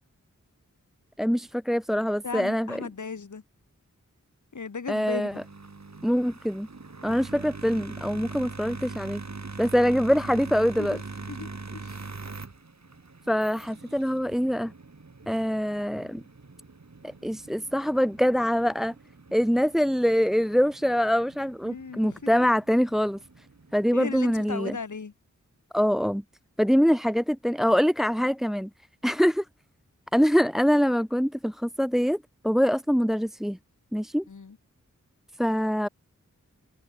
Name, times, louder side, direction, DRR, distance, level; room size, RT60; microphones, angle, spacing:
voice 1, 1.2-2.8 4.9-5.3 6.0-6.7 7.0-9.2 9.6-11.0 13.3-14.7 15.3-16.2 17.0-18.9 19.3-23.5 23.7-24.8 25.7-26.2 26.6-28.7 29.0-29.4 30.1-33.6 33.9-34.3 35.4-35.9, equal, ahead, 1.6 m, -24 dB
voice 2, 2.2-3.4 4.5-5.4 10.8-11.0 11.3-12.0 21.6-22.3 23.9-25.1 34.3-34.6, left 5 dB, 70° left, 2.0 m, -36 dB
sound 1, 5.3-24.4, right 3 dB, 60° right, 6.3 m, -43 dB
wide cardioid pair, 70°, 31 cm